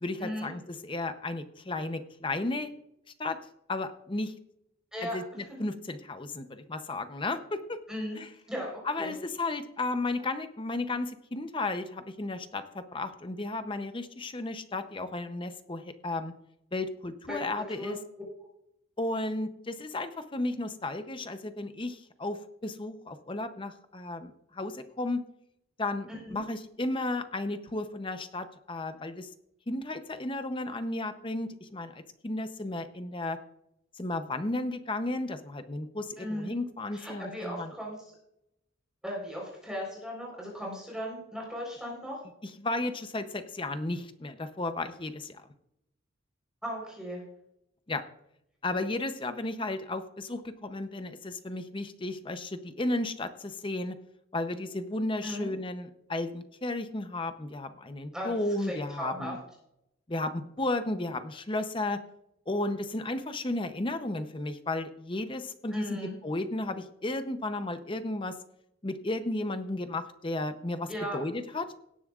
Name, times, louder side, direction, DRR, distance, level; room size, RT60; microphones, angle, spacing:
voice 1, 0.0-2.7 3.2-3.4 3.7-4.3 5.0-7.8 8.2-8.3 8.8-16.3 16.7-18.0 19.0-25.2 25.8-29.3 29.7-33.4 34.0-37.7 42.4-45.4 47.9-48.0 48.6-53.9 54.3-59.4 60.1-62.0 62.5-68.4 68.8-71.7, left 2 dB, 25° left, 9 dB, 0.7 m, -34 dB
voice 2, 4.9-5.4 7.9-8.2 8.5-9.1 17.3-18.0 26.1-26.4 36.2-36.5 36.9-37.9 39.0-42.2 46.6-47.2 55.2-55.5 58.1-59.3 65.7-66.1 70.9-71.2, equal, 5° right, -2 dB, 4.0 m, -37 dB
17.5 x 10.0 x 2.4 m, 0.78 s
head